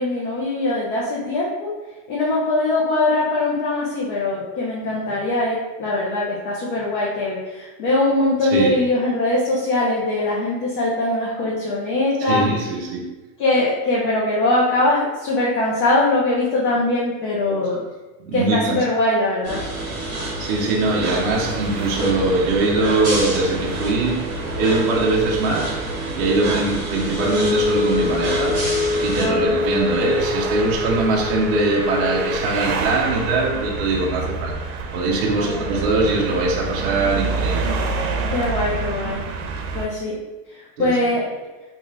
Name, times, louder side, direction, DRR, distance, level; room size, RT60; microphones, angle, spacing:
voice 1, 0.0-1.7 2.1-12.5 13.4-17.8 18.3-19.6 29.2-29.6 35.4-35.8 38.3-39.2 39.7-40.1 40.8-41.3, left 2 dB, 40° left, -5 dB, 0.6 m, -21 dB
voice 2, 8.4-8.8 12.2-13.2 17.5-17.6 18.3-18.8 20.4-25.8 26.1-28.7 29.0-34.5 34.9-38.0 40.8-41.0, right 2 dB, 45° right, -2 dB, 0.5 m, -22 dB
sound 1, 19.4-29.2, right 2 dB, 20° right, 0.9 m, -28 dB
sound 2, 21.3-39.9, right 4 dB, 85° right, 0.6 m, -29 dB
Wind instrument woodwind instrument, 27.1-32.4, left 4 dB, 80° left, 1.1 m, -24 dB
3.6 x 2.4 x 3.1 m, 1.1 s
supercardioid pair, 175°, 43 cm